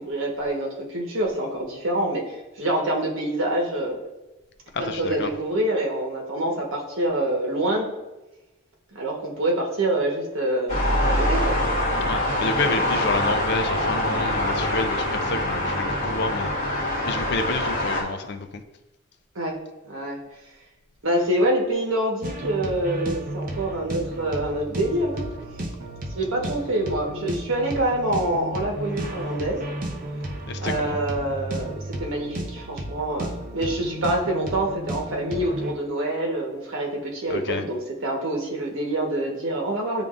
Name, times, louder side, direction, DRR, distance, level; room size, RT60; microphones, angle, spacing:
voice 1, 0.0-4.0 4.8-7.9 8.9-11.6 19.3-19.6 19.8-20.2 21.0-25.3 26.1-29.6 30.6-40.0, right 1 dB, 75° right, -1 dB, 1.3 m, -26 dB
voice 2, 4.7-5.3 12.1-16.5 17.0-18.6 30.5-31.0 37.3-37.6, left 3 dB, 55° left, 8 dB, 0.4 m, -29 dB
sound 1, 10.7-18.0, left 1 dB, 35° left, 1.5 m, -24 dB
sound 2, 22.2-35.7, right 1 dB, 40° right, 0.7 m, -33 dB
10.5 x 3.6 x 2.5 m, 1.0 s
head